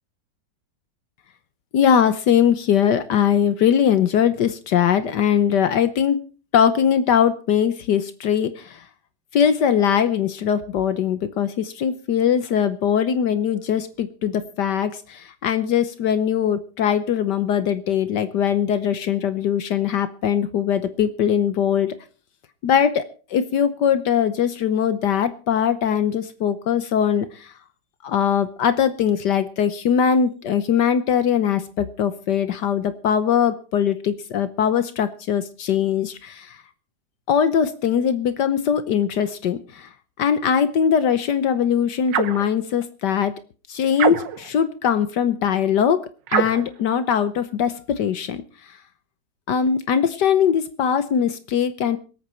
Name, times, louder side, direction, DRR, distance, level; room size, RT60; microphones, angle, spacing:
voice 1, 1.7-6.3 6.5-8.8 9.3-21.9 22.6-27.5 28.0-36.6 37.3-39.9 40.2-43.3 43.7-46.0 46.3-48.4 48.7-48.8 49.5-52.0, left 8 dB, 70° left, 12 dB, 1.5 m, -21 dB
sound 1, 42.1-42.5 44.0-44.5 46.3-46.7, right 9 dB, 80° right, 1.7 m, -23 dB
25.0 x 8.7 x 4.3 m, 0.36 s
omnidirectional pair, 2.0 m